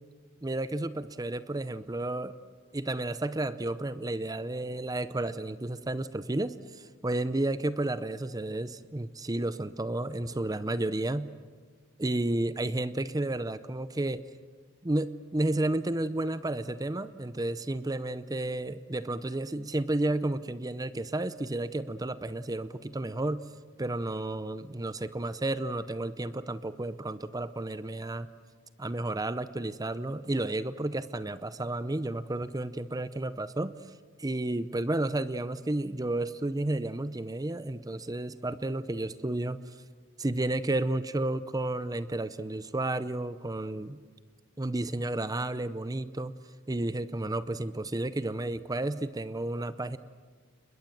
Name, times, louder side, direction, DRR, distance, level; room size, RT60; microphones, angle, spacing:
voice 1, 0.4-2.4 2.7-11.3 12.0-14.2 14.8-23.5 23.8-28.3 28.8-33.7 34.2-39.8 40.2-44.0 44.6-46.3 46.7-50.0, right 2 dB, 20° right, 14 dB, 0.7 m, -32 dB
29.5 x 21.5 x 7.4 m, 1.5 s
head